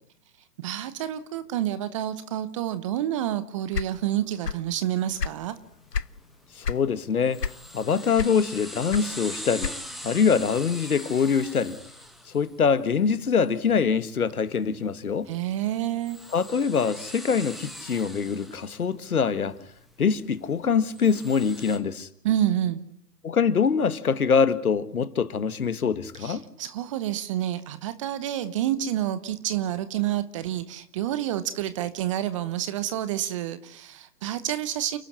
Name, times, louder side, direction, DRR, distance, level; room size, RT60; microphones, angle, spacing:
voice 1, 0.6-5.5 15.3-16.2 22.2-22.8 26.2-35.0, right 12 dB, 20° right, 0.9 m, -28 dB
sound 1, 3.7-4.7 5.0-6.2 6.6-6.9 7.4-7.8 8.2-10.1, left 6 dB, 90° left, 0.8 m, -30 dB
sound 2, 5.3-21.8, equal, ahead, 1.4 m, -43 dB
voice 2, 6.6-7.4 7.7-9.7 10.0-11.8 12.3-15.3 16.3-19.6 20.0-22.1 23.2-26.4, left 6 dB, 65° left, 1.9 m, -24 dB
29.5 x 12.0 x 9.7 m
figure-of-eight pair, 130°, 47 cm